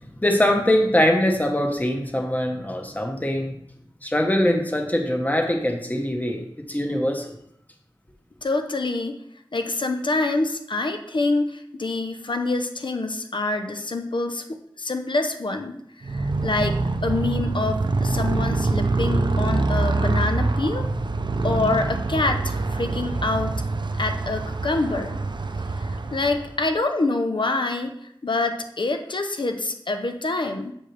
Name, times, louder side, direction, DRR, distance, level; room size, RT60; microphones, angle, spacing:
voice 1, 0.2-3.5 4.0-7.3, left 1 dB, 20° left, 3 dB, 1.2 m, -22 dB
voice 2, 8.4-9.2 9.5-14.4 14.8-15.7 16.1-20.8 21.4-23.5 24.0-25.2 25.8-27.9 28.2-30.7, left 2 dB, 65° left, 6 dB, 0.7 m, -26 dB
Motorcycle, 16.0-26.7, right 3 dB, 60° right, 0.5 m, -25 dB
7.4 x 6.3 x 3.3 m, 0.74 s
wide cardioid pair, 50°, 9 cm